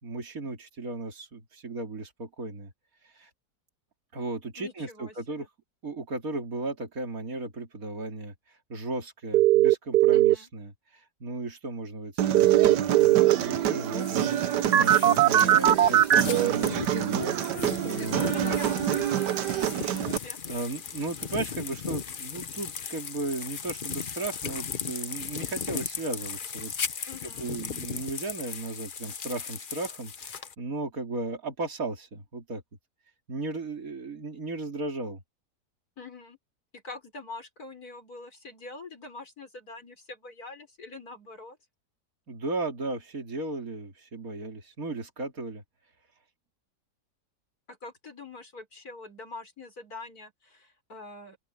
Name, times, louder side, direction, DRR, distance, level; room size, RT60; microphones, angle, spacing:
voice 1, 0.0-2.7 3.0-3.3 4.1-5.5 5.8-18.6 19.9-27.1 27.4-32.6 33.3-35.2 42.3-45.6, right 3 dB, 55° right, 3.6 m, -36 dB
voice 2, 4.6-5.5 10.1-10.5 18.0-19.2 20.2-20.4 27.1-27.5 36.0-36.4 36.7-41.6 47.7-51.4, left 3 dB, 60° left, 5.8 m, -44 dB
sound 1, 9.3-10.3 12.3-13.3 14.7-16.5, right 13 dB, 75° right, 1.4 m, -19 dB
Human voice, 12.2-20.2, right 10 dB, 90° right, 1.5 m, -28 dB
sound 2, 14.0-30.5, left 6 dB, 45° left, 0.7 m, -37 dB
open air
omnidirectional pair, 1.8 m